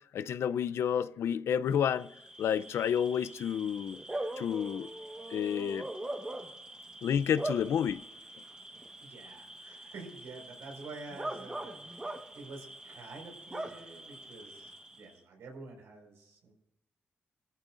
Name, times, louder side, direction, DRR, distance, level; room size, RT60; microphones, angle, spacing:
voice 1, 0.0-2.1 2.4-4.0 4.4-4.9 5.3-5.9 7.0-8.0, left 8 dB, 85° left, 0.5 m, -30 dB
Bark / Cricket, 1.9-15.2, right 1 dB, 20° right, 1.3 m, -42 dB
voice 2, 9.0-16.5, right 3 dB, 90° right, 5.0 m, -49 dB
22.0 x 14.0 x 2.6 m
cardioid pair, 85°, 4 cm